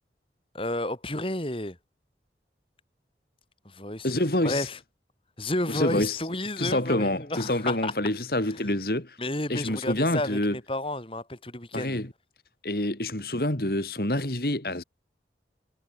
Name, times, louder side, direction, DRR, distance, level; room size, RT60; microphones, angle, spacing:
voice 1, 0.5-1.8 3.6-4.1 4.4-4.8 5.4-7.9 8.5-8.7 9.2-12.0, left 1 dB, 30° left, 4.6 m, -31 dB
voice 2, 4.0-4.7 5.7-6.2 6.6-9.2 9.5-10.6 11.7-12.1 12.6-14.8, left 1 dB, 55° left, 3.0 m, -27 dB
head